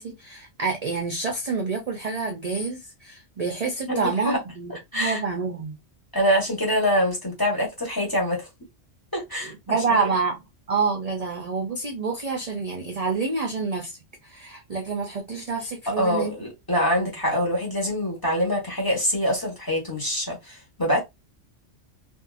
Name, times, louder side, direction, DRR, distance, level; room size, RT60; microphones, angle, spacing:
voice 1, 0.0-5.8 9.4-10.4 10.7-14.0 14.2-16.3 16.9-17.2, right 4 dB, 45° right, 0.5 m, -28 dB
voice 2, 3.9-4.4 4.9-5.2 6.1-8.5 9.1-10.0 15.9-21.0, equal, 20° left, 1.1 m, -25 dB
2.7 x 2.6 x 2.4 m
omnidirectional pair, 1.2 m